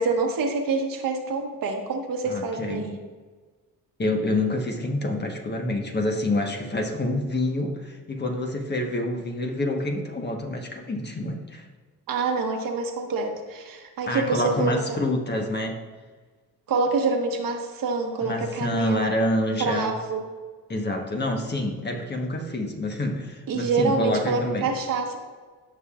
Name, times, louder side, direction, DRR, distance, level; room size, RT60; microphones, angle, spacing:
voice 1, 0.0-2.9 12.1-15.0 16.7-19.1 19.6-20.3 23.5-25.2, right 4 dB, 65° right, 2 dB, 1.3 m, -26 dB
voice 2, 2.3-2.9 4.0-11.7 14.1-15.8 18.2-19.9 20.7-24.7, left 1 dB, 30° left, 2 dB, 1.3 m, -27 dB
15.5 x 5.6 x 2.5 m, 1.4 s
cardioid pair, 80°, 36 cm